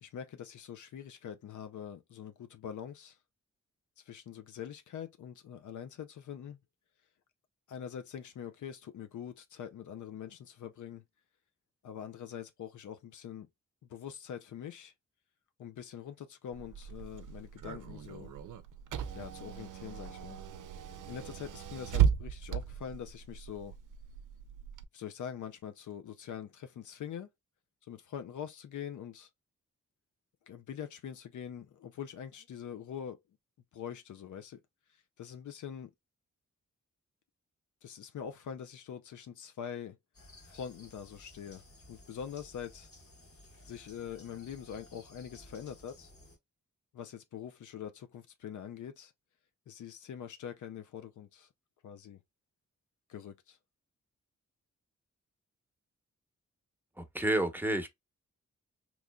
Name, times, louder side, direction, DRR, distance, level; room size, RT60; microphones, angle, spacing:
voice 1, 0.0-3.2 4.0-6.6 7.7-11.0 11.8-13.5 13.9-14.9 15.6-18.3 19.1-20.4 21.1-23.7 24.9-27.3 27.8-29.3 30.5-33.2 33.7-34.6 34.9-35.9 37.8-40.0 40.4-42.9 43.6-46.1 46.9-49.1 49.7-51.5 51.8-52.2 53.1-53.6, left 8 dB, 80° left, 0.5 m, -44 dB
Car / Engine, 16.5-24.8, right 9 dB, 85° right, 0.5 m, -35 dB
sound 1, 40.1-46.4, left 1 dB, 50° left, 1.4 m, -56 dB
voice 2, 57.0-57.9, right 1 dB, 5° right, 0.9 m, -30 dB
3.7 x 3.1 x 2.2 m
cardioid pair, 60°, 30 cm